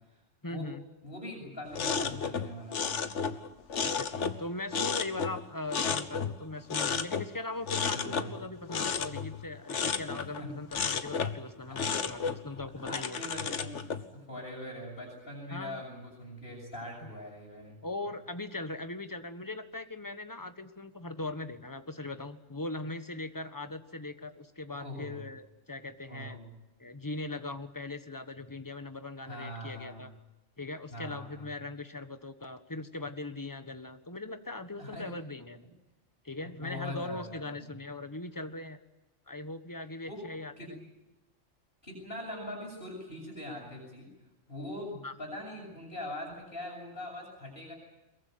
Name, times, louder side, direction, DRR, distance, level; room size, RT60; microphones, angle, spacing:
voice 1, 0.4-0.8 3.8-13.2 15.5-15.8 17.0-17.1 17.8-26.4 26.8-30.1 30.6-35.7 36.2-38.8 39.3-40.8 45.0-45.1, left 2 dB, 15° left, 9 dB, 1.3 m, -40 dB
voice 2, 1.0-3.2 7.8-8.5 10.4-10.5 12.8-17.8 24.8-25.3 26.1-26.5 29.2-30.0 30.9-31.5 34.8-35.1 36.6-37.7 40.1-40.2 40.6-40.7 41.8-44.1 44.5-47.7, left 1 dB, 45° left, -5 dB, 7.9 m, -42 dB
sound 1, 1.7-4.5 4.7-6.4 6.7-7.3 7.7-10.4 10.7-11.4 11.8-14.0, left 6 dB, 70° left, 1.5 m, -33 dB
23.5 x 22.0 x 9.5 m, 0.98 s
omnidirectional pair, 1.3 m